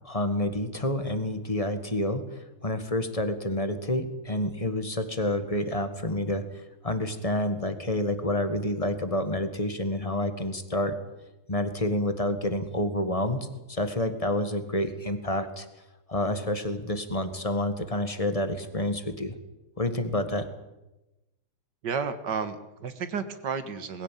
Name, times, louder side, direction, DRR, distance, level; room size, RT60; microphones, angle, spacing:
voice 1, 0.0-6.4 6.8-11.0 11.5-15.6 16.1-19.3 19.8-20.5, left 1 dB, 20° left, 8 dB, 1.5 m, -28 dB
voice 2, 21.8-24.0, right 6 dB, 55° right, 10 dB, 2.1 m, -32 dB
21.0 x 16.5 x 9.2 m, 0.98 s
omnidirectional pair, 2.4 m